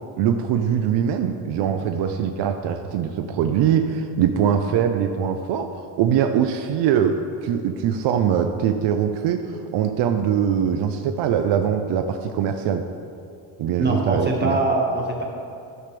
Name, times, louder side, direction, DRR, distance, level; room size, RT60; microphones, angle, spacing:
voice 1, 0.2-12.8 13.6-14.6, right 8 dB, 65° right, 6 dB, 0.6 m, -22 dB
voice 2, 13.8-15.2, right 2 dB, 20° right, -1 dB, 1.5 m, -23 dB
12.5 x 5.9 x 3.3 m, 2.5 s
cardioid pair, 100°, 45 cm